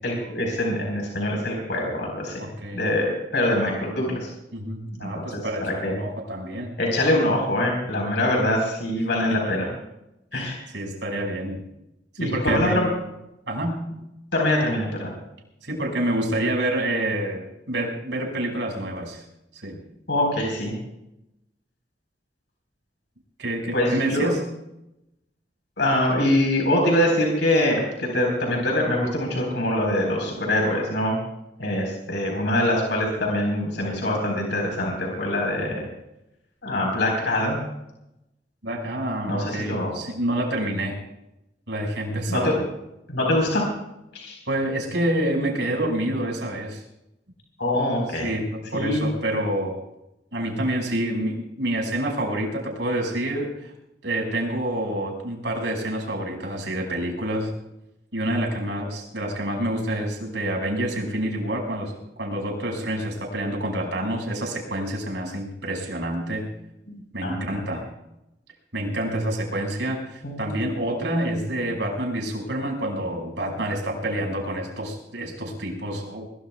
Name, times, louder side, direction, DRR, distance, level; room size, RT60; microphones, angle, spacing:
voice 1, 0.0-2.4 2.7-4.3 5.0-5.9 6.8-9.7 10.3-10.6 12.2-12.9 14.3-15.1 20.1-20.7 23.7-24.3 25.8-31.2 31.6-35.8 36.6-37.6 39.3-39.9 42.3-42.6 43.1-43.6 44.1-44.4 47.6-48.3 48.7-49.1 67.2-67.6 70.2-70.4, left 1 dB, 80° left, 0 dB, 4.2 m, -24 dB
voice 2, 2.4-2.8 4.5-6.7 8.2-8.4 9.3-9.6 10.3-11.6 12.2-12.8 13.5-13.8 15.6-19.2 19.5-19.8 23.4-24.4 38.6-41.0 41.7-42.6 44.5-46.8 48.2-49.8 50.3-53.7 54.0-57.5 58.1-66.5 67.1-67.8 68.7-76.3, right 1 dB, 90° right, 1 dB, 5.7 m, -28 dB
22.5 x 22.0 x 2.3 m, 0.88 s
head